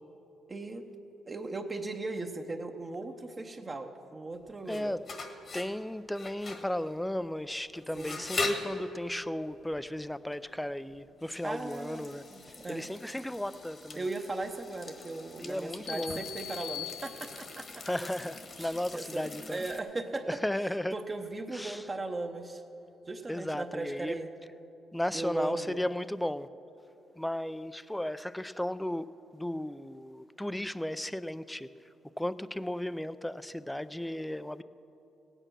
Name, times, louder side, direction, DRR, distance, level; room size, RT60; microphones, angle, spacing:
voice 1, 0.5-0.8 1.3-5.0 7.9-8.3 11.4-12.9 13.9-18.1 18.6-22.6 23.1-24.3 25.1-25.8, right 2 dB, 25° right, 4 dB, 0.8 m, -38 dB
sound 1, 4.3-19.8, left 3 dB, 45° left, 1.4 m, -42 dB
voice 2, 4.7-5.0 5.5-12.2 12.7-14.1 15.4-16.2 17.8-19.6 20.3-20.9 21.5-21.8 23.3-24.2 24.9-26.5 27.2-29.1 29.3-31.7 32.2-34.6, left 1 dB, 5° left, 15 dB, 0.4 m, -35 dB
sound 2, 15.9-17.7, left 12 dB, 80° left, 0.3 m, -42 dB
16.5 x 9.0 x 6.1 m, 2.9 s
cardioid pair, 90°, 0 cm